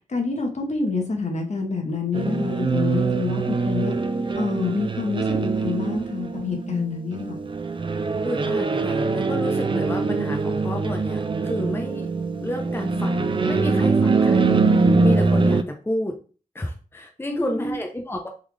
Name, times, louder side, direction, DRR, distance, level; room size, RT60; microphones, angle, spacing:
voice 1, 0.1-3.9 4.3-7.4 17.3-17.8, left 4 dB, 55° left, 1 dB, 1.0 m, -27 dB
sound 1, 2.1-15.6, right 3 dB, 35° right, 0.4 m, -23 dB
voice 2, 8.2-12.1 12.4-16.1 16.5-18.3, left 1 dB, 15° left, 3 dB, 0.6 m, -30 dB
3.7 x 2.4 x 3.1 m, 0.38 s
cardioid pair, 50°, 14 cm